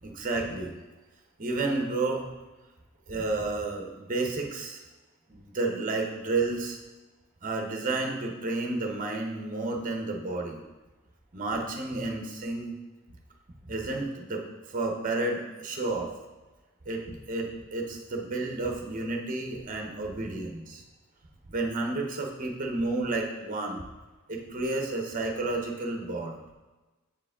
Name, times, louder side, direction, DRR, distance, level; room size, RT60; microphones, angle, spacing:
voice 1, 0.0-0.8 1.4-2.3 3.1-4.8 5.3-6.8 7.4-10.6 11.3-12.7 13.7-16.1 16.8-20.8 21.5-23.8 24.3-26.4, right 2 dB, 40° right, 2 dB, 0.8 m, -31 dB
7.4 x 4.7 x 3.6 m, 1.2 s
head